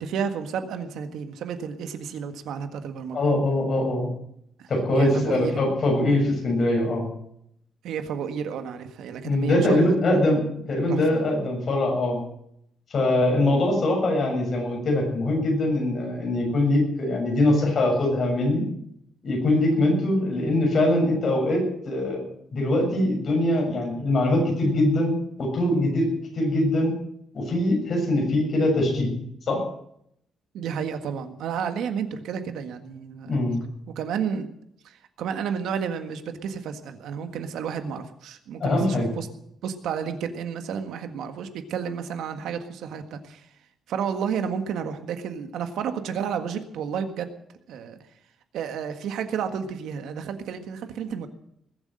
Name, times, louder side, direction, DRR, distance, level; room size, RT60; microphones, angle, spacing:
voice 1, 0.0-3.2 4.6-5.6 7.8-10.0 10.9-11.0 30.5-33.4 33.9-34.5 34.8-39.3 39.6-43.5 43.9-47.3 47.7-48.0 48.5-51.3, right 7 dB, 85° right, 8 dB, 1.7 m, -31 dB
voice 2, 3.1-4.1 4.7-7.1 9.2-10.4 10.7-12.2 12.9-18.7 19.2-22.2 22.5-26.9 27.3-29.1 29.5-29.6 33.3-33.6 38.6-39.1, left 1 dB, 40° left, 0 dB, 7.1 m, -22 dB
20.5 x 8.2 x 7.8 m, 0.72 s
cardioid pair, 170°, 0 cm